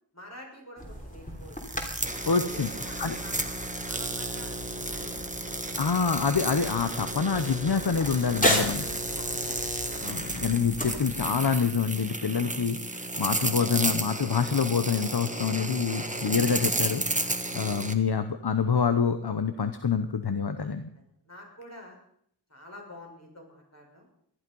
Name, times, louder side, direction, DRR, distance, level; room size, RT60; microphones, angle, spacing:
voice 1, 0.1-1.6 2.5-4.5 4.9-5.2 5.9-6.1 9.2-9.7 10.3-10.4 12.5-12.6 15.9-16.2 20.9-22.0 22.5-24.1, left 1 dB, 35° left, -1 dB, 6.4 m, -48 dB
sound 1, 0.8-11.2, equal, 20° left, 3.4 m, -35 dB
sound 2, 1.5-17.9, right 1 dB, 15° right, 1.4 m, -33 dB
voice 2, 2.3-2.7 3.0-3.1 5.7-9.0 10.0-12.8 13.2-20.8, left 6 dB, 60° left, 9 dB, 1.0 m, -26 dB
19.0 x 12.0 x 5.5 m, 0.67 s
wide cardioid pair, 55°, 43 cm